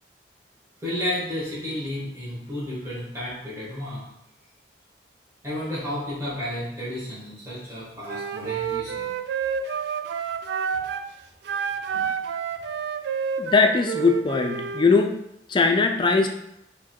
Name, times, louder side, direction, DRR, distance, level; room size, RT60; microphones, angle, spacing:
voice 1, 0.8-4.0 5.4-9.1, left 1 dB, 15° right, -10 dB, 1.3 m, -32 dB
Wind instrument woodwind instrument, 8.1-11.1 11.4-14.9, right 7 dB, 70° right, 0.3 m, -29 dB
voice 2, 13.4-15.1 15.5-16.3, left 4 dB, 25° left, 5 dB, 0.3 m, -20 dB
4.6 x 2.2 x 4.4 m, 0.82 s
head